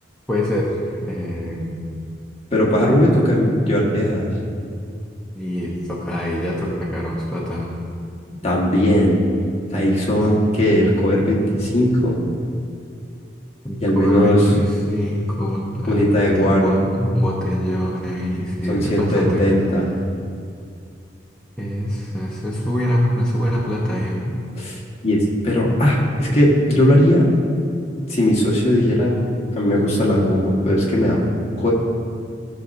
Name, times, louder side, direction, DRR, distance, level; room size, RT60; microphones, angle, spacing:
voice 1, 0.3-0.7 1.0-1.8 5.3-7.7 13.6-19.5 21.6-24.4, equal, 5° left, -7 dB, 0.9 m, -24 dB
voice 2, 2.5-4.3 8.4-9.2 9.7-12.2 13.8-14.4 15.9-16.8 18.7-19.8 24.6-27.2 28.1-29.2 29.5-31.2 31.6-31.7, equal, 35° left, -4 dB, 1.6 m, -18 dB
16.0 x 6.5 x 2.7 m, 2.3 s
head